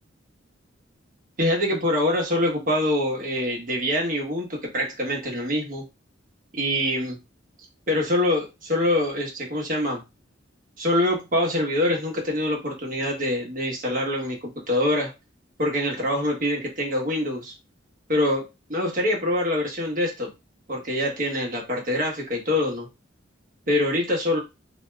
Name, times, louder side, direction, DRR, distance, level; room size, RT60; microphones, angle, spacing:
voice 1, 1.4-5.8 6.5-7.2 7.9-10.0 10.8-15.1 15.6-17.5 18.1-20.3 20.7-22.9 23.7-24.4, left 1 dB, 45° right, -1 dB, 1.1 m, -25 dB
2.8 x 2.3 x 3.2 m, 0.25 s
head